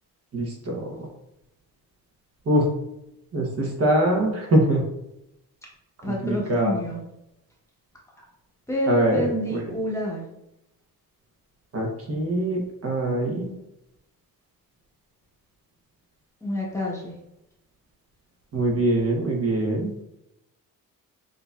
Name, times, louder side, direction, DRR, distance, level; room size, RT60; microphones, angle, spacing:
voice 1, 0.3-1.0 2.5-2.7 3.3-4.8 6.0-6.7 8.9-9.7 11.7-13.5 18.5-19.9, right 1 dB, 40° right, 0 dB, 1.0 m, -23 dB
voice 2, 6.0-7.0 8.7-10.2 16.4-17.1, equal, 10° left, -4 dB, 1.0 m, -28 dB
6.4 x 2.7 x 2.3 m, 0.87 s
cardioid pair, 125°, 35 cm